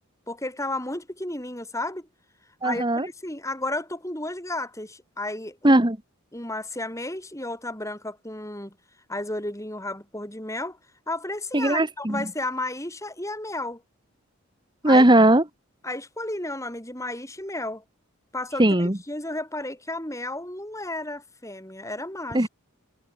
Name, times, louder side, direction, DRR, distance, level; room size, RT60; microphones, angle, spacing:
voice 1, 0.3-2.1 2.6-5.8 6.3-8.8 9.1-10.8 11.1-13.8 14.9-15.1 15.8-17.8 18.3-18.6 19.1-22.5, left 2 dB, 15° left, 7.2 m, -33 dB
voice 2, 2.6-3.1 5.6-6.0 11.5-12.3 14.8-15.4 18.6-19.0 22.3-22.5, right 1 dB, 20° right, 1.6 m, -18 dB
head